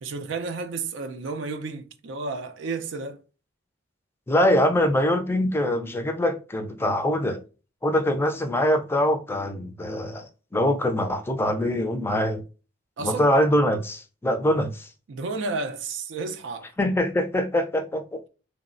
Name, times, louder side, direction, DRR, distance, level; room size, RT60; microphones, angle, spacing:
voice 1, 0.0-3.2 13.0-13.3 15.1-16.7, right 4 dB, 85° right, 0.4 m, -32 dB
voice 2, 4.3-7.4 7.8-12.4 13.0-14.9 16.8-18.2, left 1 dB, 15° left, 0.4 m, -23 dB
3.1 x 2.0 x 2.4 m
head